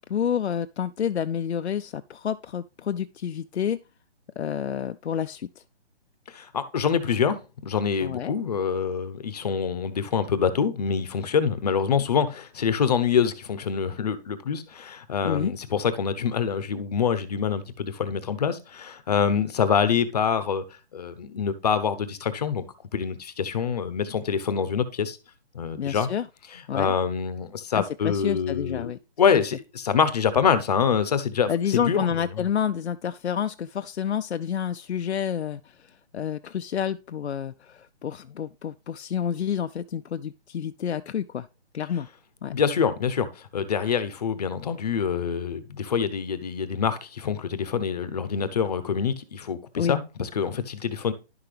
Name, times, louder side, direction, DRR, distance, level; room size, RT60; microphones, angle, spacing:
voice 1, 0.1-3.8 4.4-5.6 8.0-8.3 15.2-15.5 25.7-26.3 26.7-26.9 27.7-29.0 31.5-35.7 36.1-41.5 41.7-42.1 42.4-42.5 49.8-50.0, left 8 dB, 80° left, 0.6 m, -29 dB
voice 2, 6.3-20.6 20.9-22.7 22.9-25.2 25.5-26.1 26.5-28.9 29.2-32.4 42.5-51.1, left 7 dB, 35° left, 0.9 m, -25 dB
11.0 x 5.9 x 3.3 m
hypercardioid pair, 160°, 33 cm